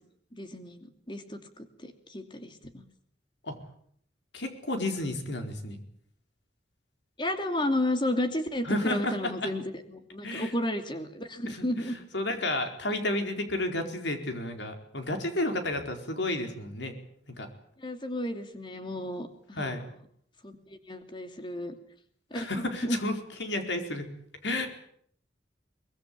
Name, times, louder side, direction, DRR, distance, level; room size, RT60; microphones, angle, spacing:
voice 1, 0.3-2.8 7.2-12.0 17.8-19.9 20.4-21.8 22.3-23.0, left 1 dB, 25° left, 7 dB, 2.7 m, -33 dB
voice 2, 4.3-5.8 8.6-9.5 10.2-10.5 11.5-11.6 11.8-17.0 17.3-17.5 19.6-19.8 22.3-23.1 23.4-24.1 24.4-24.7, left 1 dB, 80° left, 5 dB, 4.5 m, -31 dB
23.5 x 21.0 x 8.6 m, 0.65 s
head